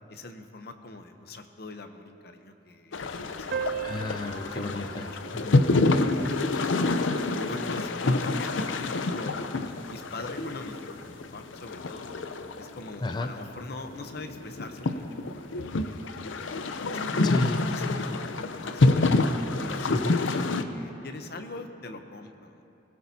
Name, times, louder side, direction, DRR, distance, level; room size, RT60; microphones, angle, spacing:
voice 1, 0.1-3.8 4.5-5.2 6.1-6.9 7.2-12.1 12.6-16.0 16.9-19.1 19.6-22.6, left 2 dB, 55° left, 7 dB, 0.8 m, -43 dB
sound 1, 2.9-20.6, left 2 dB, 85° left, 0.6 m, -28 dB
sound 2, 3.5-8.5, right 7 dB, 55° right, 0.4 m, -40 dB
voice 2, 3.8-5.6 13.0-13.3 17.2-17.6 19.9-20.2, left 2 dB, 25° left, 6 dB, 0.4 m, -31 dB
20.0 x 17.0 x 2.8 m, 2.8 s
head